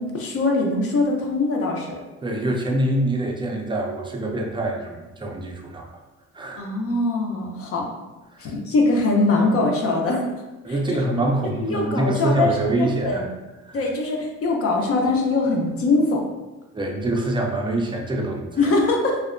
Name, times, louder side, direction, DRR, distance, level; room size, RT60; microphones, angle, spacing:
voice 1, 0.0-1.9 6.6-7.9 8.4-10.3 10.7-11.0 11.6-13.3 13.7-16.2 18.6-19.2, left 2 dB, 50° left, 0 dB, 0.5 m, -22 dB
voice 2, 2.2-5.8 6.3-6.7 8.4-8.5 10.6-13.3 13.7-13.8 16.7-18.7, right 1 dB, 15° right, 1 dB, 0.4 m, -25 dB
2.6 x 2.1 x 2.4 m, 1.1 s
cardioid pair, 90°, 30 cm